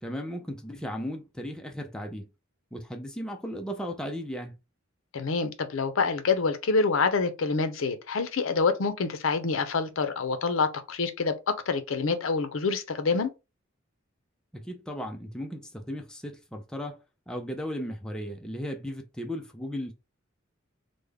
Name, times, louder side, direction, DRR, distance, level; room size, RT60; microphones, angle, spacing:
voice 1, 0.0-2.3 2.7-4.6 14.5-17.0 17.3-19.9, equal, 5° left, 0.4 m, -36 dB
voice 2, 5.1-11.3 11.7-13.3, left 4 dB, 75° left, 0.5 m, -26 dB
3.4 x 2.1 x 3.3 m
head